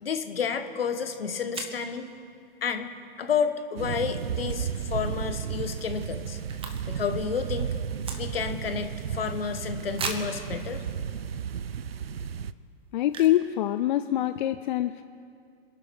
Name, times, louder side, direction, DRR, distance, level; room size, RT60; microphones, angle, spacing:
voice 1, 0.0-2.1 2.6-2.9 3.2-6.4 6.8-7.7 8.2-10.8, left 6 dB, 75° left, 9 dB, 1.5 m, -30 dB
sound 1, 0.9-1.0 1.5-1.9 4.8-5.1 5.4-5.5 5.7-7.1 7.4-8.6 9.1-9.2 9.9-10.4 11.1-11.2 11.7-11.9 13.0-13.5 13.8-13.9 14.0-14.4, right 4 dB, 20° right, 1.6 m, -37 dB
sound 2, 3.8-12.5, right 7 dB, 80° right, 0.6 m, -33 dB
voice 2, 12.9-15.0, left 13 dB, 50° left, 11 dB, 0.6 m, -25 dB
26.5 x 11.5 x 4.7 m, 2.4 s
figure-of-eight pair, 110°, 30 cm